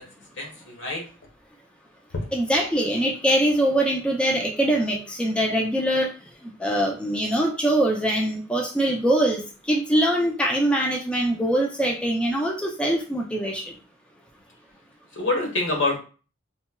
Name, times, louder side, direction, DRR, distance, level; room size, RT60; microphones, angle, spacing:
voice 1, 0.4-1.0 15.2-16.0, left 2 dB, 80° left, 0 dB, 1.1 m, -25 dB
voice 2, 2.3-6.1 6.4-9.4 9.7-13.7, right 1 dB, 5° left, -1 dB, 0.4 m, -23 dB
4.1 x 2.1 x 2.2 m, 0.36 s
head